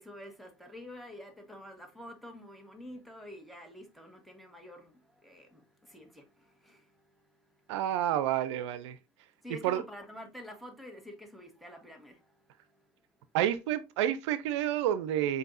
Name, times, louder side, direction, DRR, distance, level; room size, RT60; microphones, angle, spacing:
voice 1, 0.0-4.9 5.2-5.6 5.9-6.2 6.7-6.8 9.4-12.2, left 1 dB, ahead, 1.6 m, -47 dB
voice 2, 7.7-9.0 9.6-9.8 13.3-15.4, right 11 dB, 90° right, 0.4 m, -29 dB
7.5 x 2.7 x 2.5 m
supercardioid pair, 80°, 15 cm